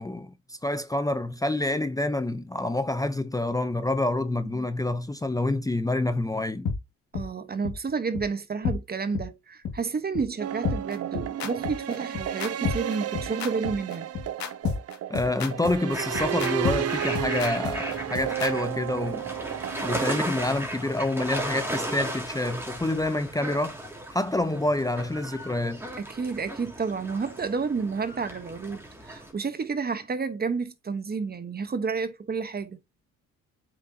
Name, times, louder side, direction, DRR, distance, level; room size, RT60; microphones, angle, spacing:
voice 1, 0.0-6.7 15.1-19.2 19.8-23.8 24.1-25.8, left 2 dB, 10° left, 0.7 m, -27 dB
sound 1, 6.7-6.8 7.1-7.3 7.6-7.7 8.2-8.3 8.6-8.8 9.1-9.3 9.6-9.7 10.2-10.3 10.6-18.5, left 6 dB, 70° left, 2.2 m, -30 dB
voice 2, 7.1-14.1 26.0-32.8, right 5 dB, 30° right, 1.2 m, -30 dB
sound 2, 10.4-20.2, right 10 dB, 55° right, 0.6 m, -32 dB
sound 3, 15.9-29.3, right 1 dB, 10° right, 3.1 m, -36 dB
8.0 x 5.9 x 2.8 m
cardioid pair, 90°, 30 cm